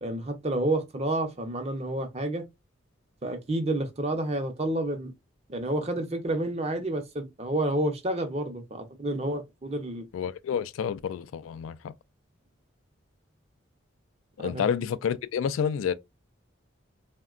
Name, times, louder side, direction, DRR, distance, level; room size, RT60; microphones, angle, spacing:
voice 1, 0.0-2.4 3.2-5.1 5.5-10.1 14.4-14.6, right 1 dB, 30° right, 0.5 m, -29 dB
voice 2, 10.1-11.9 14.4-15.9, left 7 dB, 90° left, 0.3 m, -29 dB
3.6 x 2.1 x 2.3 m
head